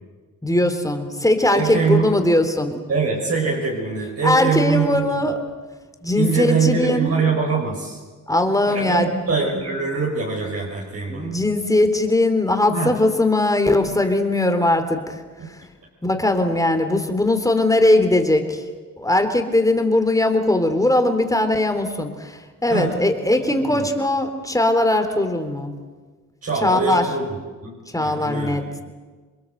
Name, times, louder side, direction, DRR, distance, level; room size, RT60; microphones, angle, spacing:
voice 1, 0.4-2.8 4.2-5.4 6.0-7.1 8.3-9.1 11.1-15.2 16.0-18.6 19.0-25.7 26.6-27.1 27.9-28.9, left 1 dB, 10° left, 6 dB, 3.5 m, -20 dB
voice 2, 1.5-2.3 2.9-5.2 6.2-8.0 8.7-11.3 12.7-13.0 15.4-15.5 22.7-22.9 23.4-23.9 26.4-28.6, right 5 dB, 55° right, -2 dB, 5.6 m, -23 dB
28.0 x 22.0 x 7.9 m, 1.4 s
cardioid pair, 85°, 30 cm